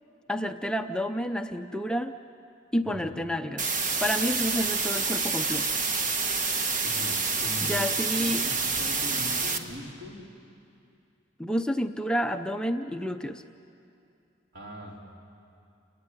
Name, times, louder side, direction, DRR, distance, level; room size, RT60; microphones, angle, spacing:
voice 1, 0.3-2.1 2.7-3.7 4.0-5.7 7.6-8.4 11.4-13.4, equal, 5° left, 6 dB, 0.5 m, -29 dB
sound 1, 3.6-9.6, right 4 dB, 45° right, 1.4 m, -28 dB
voice 2, 6.8-10.2 14.5-15.0, left 1 dB, 70° right, -1 dB, 4.1 m, -41 dB
29.0 x 17.5 x 9.8 m, 2.6 s
head